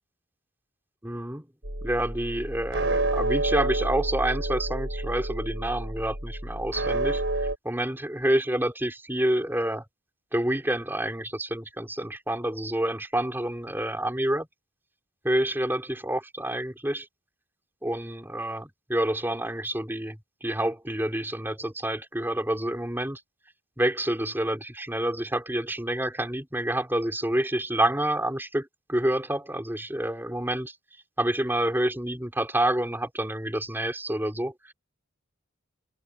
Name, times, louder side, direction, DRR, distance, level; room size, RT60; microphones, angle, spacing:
voice 1, 1.0-1.4 1.8-9.8 10.3-14.5 15.2-17.1 17.8-23.2 23.8-30.7 31.2-34.7, right 1 dB, 10° right, 4.0 m, -28 dB
sound 1, 1.6-7.5, right 2 dB, 60° right, 6.7 m, -29 dB
open air
head